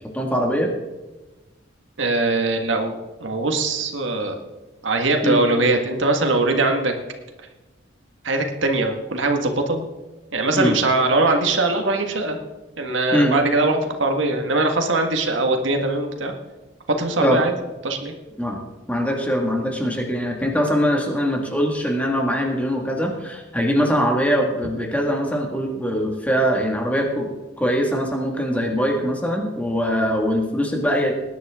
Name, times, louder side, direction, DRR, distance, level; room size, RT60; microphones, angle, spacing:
voice 1, 0.1-0.7 5.2-5.5 10.5-10.7 13.1-13.5 17.2-17.4 18.4-18.6 18.9-31.1, equal, 5° left, 1 dB, 1.9 m, -22 dB
voice 2, 2.0-4.4 4.8-6.9 8.2-9.9 10.3-12.4 12.8-16.3 16.9-17.5 17.8-18.1, right 2 dB, 75° right, 4 dB, 1.7 m, -21 dB
19.5 x 10.5 x 3.7 m, 1.1 s
head